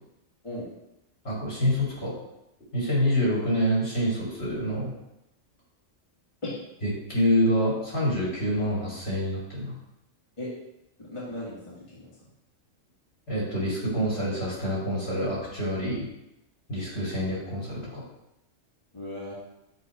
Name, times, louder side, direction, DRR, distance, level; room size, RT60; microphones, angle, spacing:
voice 1, 1.2-2.1 2.7-4.9 6.8-9.7 13.3-16.1 16.7-18.0, equal, 55° left, -7 dB, 3.0 m, -26 dB
voice 2, 11.1-12.2 16.8-16.9 18.9-19.3, left 1 dB, 25° left, -8 dB, 1.6 m, -37 dB
7.7 x 2.9 x 4.8 m, 0.89 s
omnidirectional pair, 1.3 m